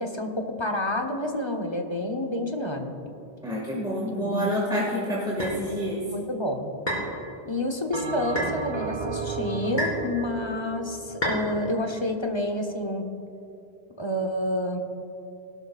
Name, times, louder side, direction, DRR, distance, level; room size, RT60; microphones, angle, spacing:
voice 1, 0.0-3.1 4.1-4.5 6.1-6.7 7.4-13.1 14.0-14.8, left 1 dB, 30° left, 3 dB, 1.0 m, -29 dB
voice 2, 3.4-6.0, equal, 5° right, -6 dB, 1.9 m, -28 dB
sound 1, 5.4-5.6 6.9-7.1 8.3-8.6 9.8-10.1 11.2-11.4, equal, 45° left, 3.4 m, -28 dB
Bell, 7.9-12.5, right 4 dB, 50° right, 0.8 m, -34 dB
17.5 x 12.5 x 2.4 m, 2.8 s
omnidirectional pair, 1.1 m